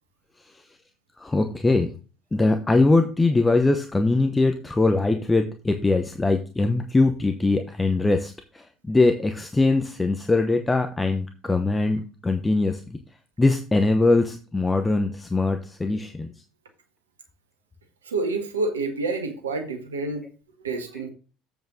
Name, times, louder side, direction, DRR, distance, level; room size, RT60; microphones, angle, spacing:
voice 1, 1.2-1.9 2.3-13.0 13.4-16.3, left 3 dB, 15° left, 6 dB, 1.0 m, -22 dB
voice 2, 18.0-20.2 20.6-21.1, right 3 dB, 80° right, 6 dB, 1.4 m, -28 dB
7.8 x 7.1 x 3.7 m, 0.34 s
figure-of-eight pair, 60°, 0 cm